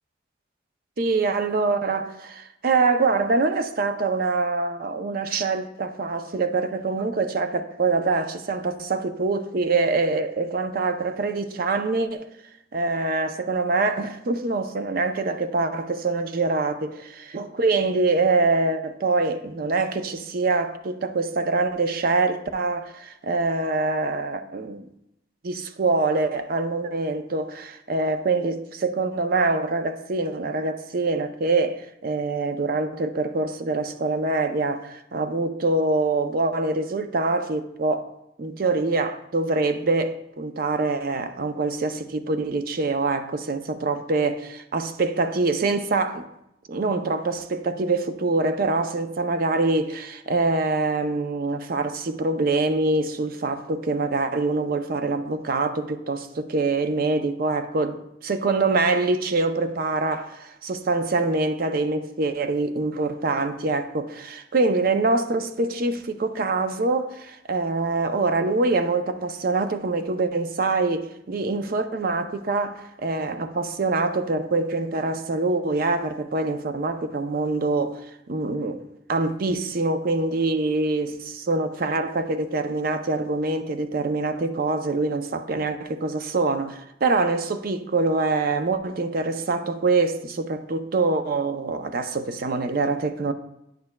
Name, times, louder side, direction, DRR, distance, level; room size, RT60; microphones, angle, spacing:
voice 1, 1.0-12.3 12.7-16.9 17.3-24.8 25.4-38.1 38.4-46.2 46.7-78.8 79.1-93.3, right 3 dB, 50° right, 0.5 m, -24 dB
9.5 x 6.6 x 2.2 m
head